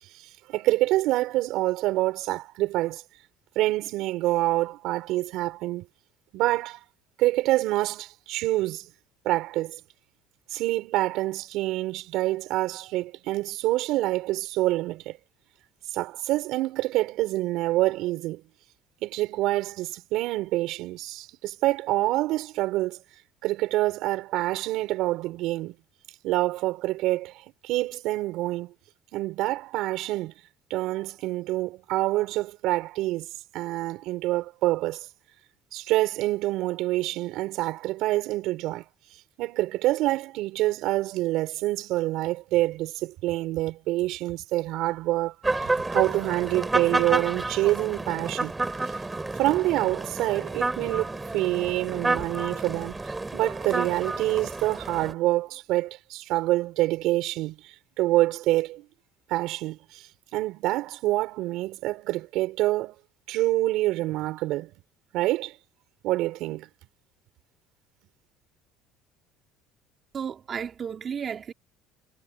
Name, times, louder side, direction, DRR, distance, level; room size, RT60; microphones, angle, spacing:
voice 1, 0.1-3.0 3.6-5.9 6.3-6.8 7.2-8.9 9.3-9.8 10.5-15.2 15.9-18.4 19.0-23.0 23.4-25.8 26.2-28.7 29.1-30.3 30.7-35.1 35.7-38.9 39.4-48.5 49.3-53.0 53.3-58.9 59.3-63.0 63.3-64.7 65.1-65.6 66.0-66.7, right 17 dB, 65° right, 5.2 m, -26 dB
sound 1, 45.4-55.1, right 2 dB, 10° right, 4.6 m, -30 dB
voice 2, 70.1-71.5, right 7 dB, 35° right, 3.5 m, -33 dB
cardioid pair, 135°, 0 cm